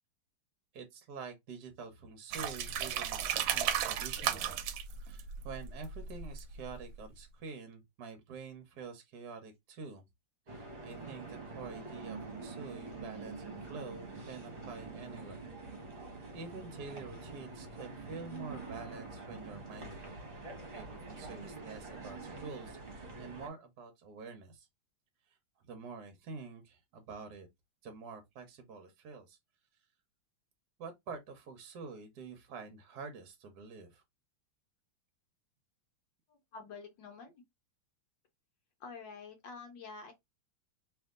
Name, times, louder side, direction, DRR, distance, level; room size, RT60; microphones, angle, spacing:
voice 1, 0.7-4.5 5.0-10.0 10.5-15.5 16.3-20.2 20.7-24.7 25.3-25.4 25.6-27.5 27.8-29.4 30.8-34.0, right 4 dB, 60° right, 1.1 m, -47 dB
sound 1, 2.3-7.0, right 9 dB, 75° right, 1.3 m, -35 dB
sound 2, 10.5-23.5, right 3 dB, 30° right, 1.1 m, -46 dB
voice 2, 36.3-37.4 38.8-40.1, left 4 dB, 65° left, 1.5 m, -48 dB
3.4 x 2.9 x 3.5 m
omnidirectional pair, 2.3 m